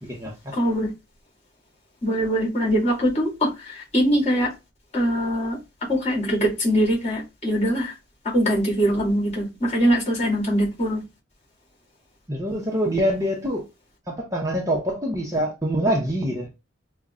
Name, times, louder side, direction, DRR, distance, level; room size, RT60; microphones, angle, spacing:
voice 1, 0.0-0.3 12.3-13.7 14.1-16.5, equal, 15° right, 0.8 m, -25 dB
voice 2, 0.5-0.9 2.0-4.5 4.9-5.6 5.9-7.9 8.2-11.0, equal, 35° left, 2.4 m, -22 dB
5.2 x 2.3 x 3.6 m
head